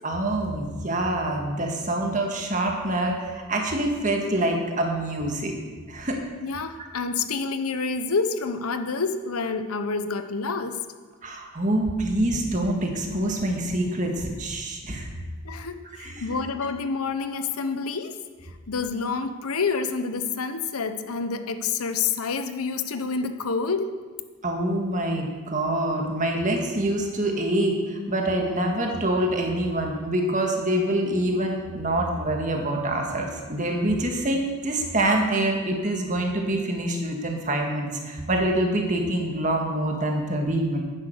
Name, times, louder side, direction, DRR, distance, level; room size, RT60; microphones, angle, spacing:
voice 1, 0.0-5.6 5.9-6.2 11.2-15.1 16.0-16.3 24.4-40.8, right 1 dB, 35° right, 1 dB, 1.8 m, -26 dB
voice 2, 6.4-10.8 15.4-18.2 18.7-24.0, left 4 dB, 80° left, 8 dB, 0.9 m, -28 dB
11.0 x 9.7 x 6.6 m, 1.4 s
head